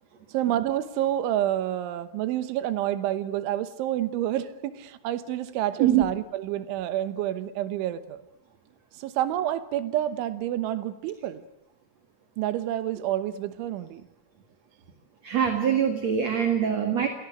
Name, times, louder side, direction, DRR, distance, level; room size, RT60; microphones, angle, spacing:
voice 1, 0.3-8.2 9.0-11.4 12.4-14.1 16.7-16.9, right 12 dB, 85° right, 12 dB, 3.5 m, -29 dB
voice 2, 15.2-17.1, right 9 dB, 50° right, 5 dB, 2.3 m, -23 dB
27.0 x 17.5 x 9.2 m, 0.88 s
omnidirectional pair, 5.4 m